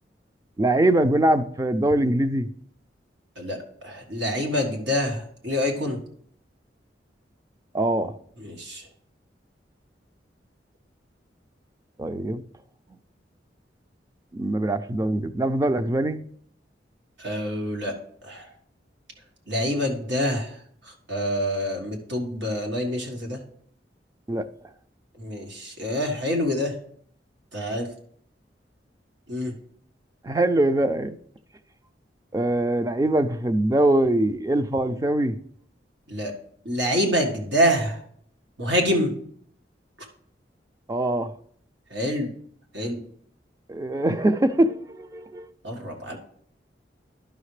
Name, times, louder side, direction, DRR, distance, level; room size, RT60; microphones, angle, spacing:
voice 1, 0.6-2.5 7.7-8.2 12.0-12.4 14.3-16.2 24.3-24.5 30.2-31.2 32.3-35.4 40.9-41.3 43.7-45.5, right 1 dB, 20° right, 0.4 m, -23 dB
voice 2, 3.4-6.0 8.4-8.8 17.2-17.9 18.2-18.5 19.5-20.5 20.8-23.4 25.2-26.7 27.5-27.9 29.3-29.5 36.1-36.3 36.6-38.0 38.6-39.1 41.9-42.3 42.7-43.0 45.6-46.2, equal, 90° right, 1.7 m, -26 dB
11.5 x 5.7 x 3.2 m
head